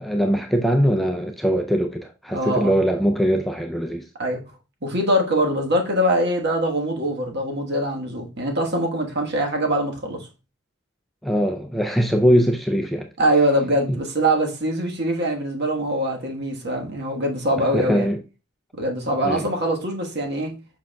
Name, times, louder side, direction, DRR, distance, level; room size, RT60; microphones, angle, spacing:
voice 1, 0.0-4.1 11.2-13.1 13.9-14.0 17.6-18.2 19.2-19.5, equal, ahead, 0.4 m, -21 dB
voice 2, 2.3-2.8 4.2-4.5 4.8-10.3 13.2-18.1 18.7-20.6, right 1 dB, 50° right, 1.3 m, -23 dB
7.4 x 5.7 x 2.2 m
head